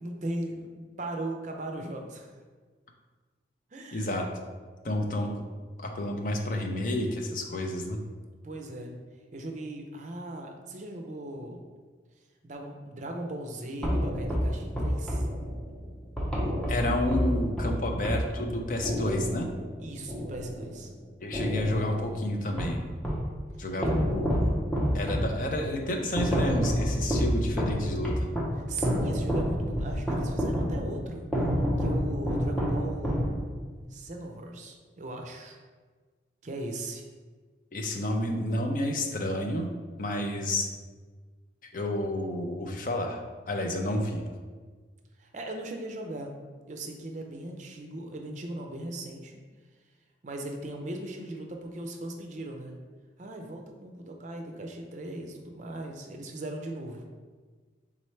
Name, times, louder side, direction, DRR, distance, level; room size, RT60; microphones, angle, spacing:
voice 1, 0.0-2.3 3.7-4.2 8.4-8.9 9.3-11.6 12.4-15.3 19.8-20.9 23.8-23.9 28.6-31.4 31.8-33.3 33.9-35.6 36.4-37.0 45.2-46.3 46.7-49.4 50.2-52.7 53.2-57.0, right 1 dB, 40° right, 3 dB, 0.5 m, -38 dB
voice 2, 3.9-4.3 4.8-5.5 5.8-8.0 16.7-19.5 21.2-22.8 23.6-24.3 24.9-28.3 37.7-39.7 40.0-40.7 41.6-44.2, left 1 dB, 45° left, 2 dB, 0.5 m, -30 dB
sound 1, 13.8-20.9 21.3-23.3 23.8-33.7, equal, 5° left, 0.6 m, -29 dB
4.3 x 3.7 x 3.2 m, 1.5 s
head